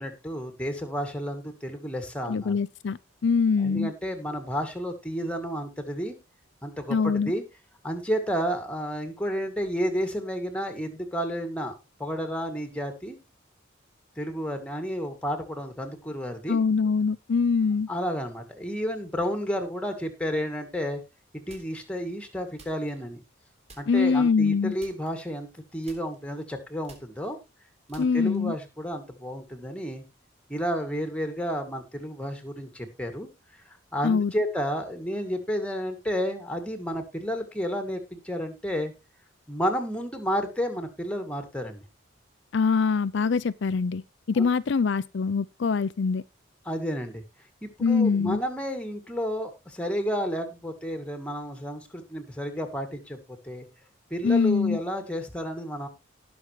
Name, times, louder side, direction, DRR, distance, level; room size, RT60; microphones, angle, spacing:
voice 1, 0.0-2.6 3.6-6.1 6.6-7.4 7.8-11.7 12.0-13.2 14.2-16.6 17.9-21.0 21.5-23.2 23.8-27.4 27.9-30.0 30.5-33.3 33.7-38.9 39.5-41.8 44.4-44.5 46.6-47.2 47.6-53.2 53.4-53.7 54.1-55.9, equal, 5° left, 2.0 m, -31 dB
voice 2, 2.3-3.9 6.9-7.3 16.5-17.9 23.9-24.7 28.0-28.5 34.0-34.3 42.5-44.0 44.3-46.2 47.8-48.4 54.2-54.8, left 5 dB, 65° left, 0.4 m, -23 dB
sound 1, 21.5-22.0 22.6-23.4 23.7-24.2 24.8-25.6 25.8-28.6, right 2 dB, 30° right, 3.6 m, -53 dB
18.5 x 6.2 x 3.1 m
head